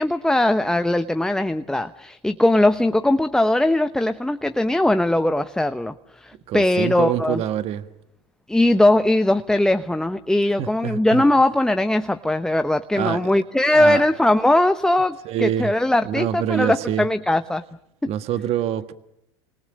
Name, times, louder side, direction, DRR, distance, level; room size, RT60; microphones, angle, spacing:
voice 1, 0.0-7.4 8.5-17.6 18.0-18.1, left 1 dB, 5° left, 9 dB, 0.9 m, -20 dB
voice 2, 6.5-7.9 10.6-11.2 12.9-13.3 13.7-14.0 15.2-15.7 16.0-17.1 18.1-18.9, right 10 dB, 45° right, 10 dB, 1.5 m, -25 dB
29.5 x 26.5 x 6.3 m, 0.80 s
hypercardioid pair, 85°, 14 cm